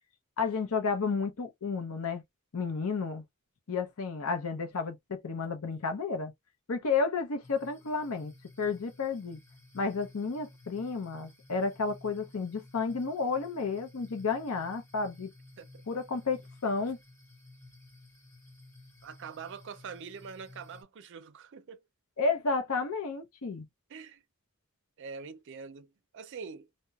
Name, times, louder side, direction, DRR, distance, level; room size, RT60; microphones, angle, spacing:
voice 1, 0.4-2.2 2.5-3.2 3.7-6.3 6.7-8.3 8.6-9.4 9.7-15.3 15.9-17.0 22.2-23.7, left 4 dB, 75° left, 0.6 m, -31 dB
sound 1, 7.4-20.8, left 2 dB, 10° left, 1.0 m, -55 dB
voice 2, 19.0-21.8 23.9-24.2 25.0-26.7, right 5 dB, 55° right, 0.4 m, -44 dB
2.8 x 2.1 x 2.3 m
head